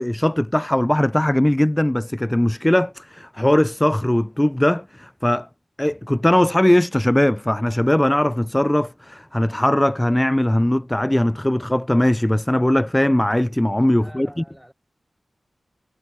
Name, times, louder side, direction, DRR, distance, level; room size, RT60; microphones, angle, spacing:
voice 1, 0.0-5.5 5.8-14.4, left 1 dB, 10° left, 0.5 m, -19 dB
voice 2, 14.0-14.7, equal, 5° right, 7.8 m, -45 dB
cardioid pair, 60°, 0 cm